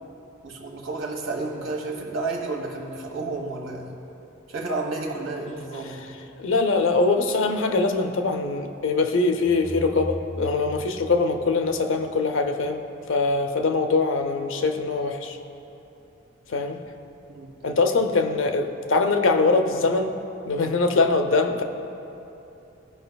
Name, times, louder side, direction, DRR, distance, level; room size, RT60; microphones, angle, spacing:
voice 1, 0.4-3.9 4.5-6.0 17.3-17.5, right 3 dB, 75° right, 0 dB, 1.4 m, -31 dB
voice 2, 6.4-12.8 13.1-15.4 16.5-16.8 17.6-20.1 20.5-21.6, left 3 dB, 70° left, 6 dB, 0.6 m, -22 dB
sound 1, 9.4-12.3, equal, 10° left, 0.7 m, -38 dB
16.0 x 5.5 x 2.3 m, 2.9 s
head